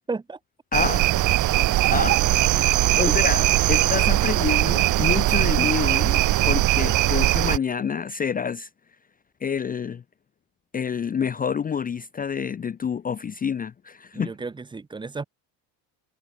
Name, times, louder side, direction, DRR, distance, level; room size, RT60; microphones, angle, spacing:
voice 1, 0.1-0.4 14.1-15.2, right 4 dB, 10° right, 0.8 m, -33 dB
voice 2, 0.7-1.0 1.6-2.2 2.6-6.2 6.5-8.7 9.4-10.0 10.7-14.3, left 7 dB, 20° left, 0.7 m, -28 dB
sound 1, 0.7-7.6, right 16 dB, 45° right, 0.7 m, -20 dB
cardioid pair, 165°, 42 cm